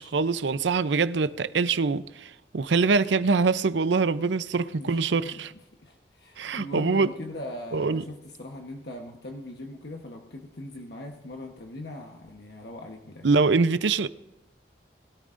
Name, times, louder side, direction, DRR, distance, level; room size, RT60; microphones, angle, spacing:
voice 1, 0.0-5.5 6.4-7.1 7.7-8.0 13.2-14.1, right 4 dB, 90° right, 0.6 m, -24 dB
voice 2, 4.8-5.4 5.8-13.3, left 1 dB, 65° left, 1.1 m, -40 dB
21.0 x 13.5 x 2.6 m
head